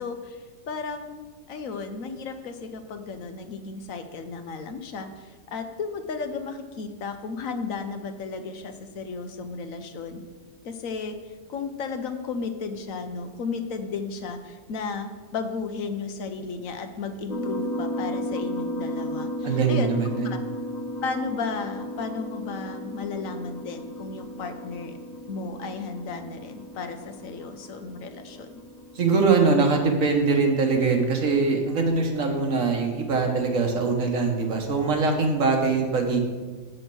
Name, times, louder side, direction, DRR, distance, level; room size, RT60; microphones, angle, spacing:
voice 1, 0.0-10.2 10.6-19.9 20.2-20.4 21.0-25.0 25.3-28.5, left 4 dB, 70° left, 7 dB, 1.2 m, -34 dB
sound 1, 17.3-29.7, left 1 dB, 35° left, 1.1 m, -35 dB
voice 2, 19.4-20.4 28.9-36.2, right 4 dB, 65° right, 3 dB, 1.6 m, -22 dB
8.0 x 6.4 x 6.1 m, 1.4 s
omnidirectional pair, 1.5 m